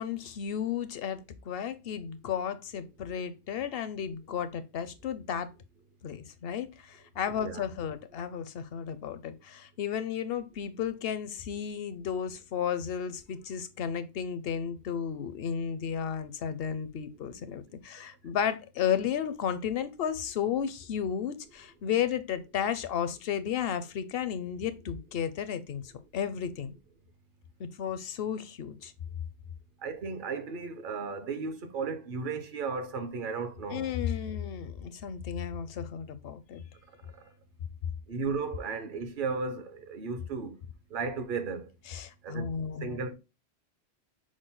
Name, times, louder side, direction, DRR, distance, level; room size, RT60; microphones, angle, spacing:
voice 1, 0.0-5.5 6.0-26.8 27.6-28.9 33.7-36.6 41.9-43.0, left 8 dB, 65° left, 0.7 m, -33 dB
voice 2, 29.8-34.0 37.2-37.3 38.1-40.6 40.9-41.7 42.2-42.5 42.8-43.1, right 4 dB, 55° right, 0.8 m, -35 dB
6.2 x 2.1 x 3.7 m
omnidirectional pair, 1.1 m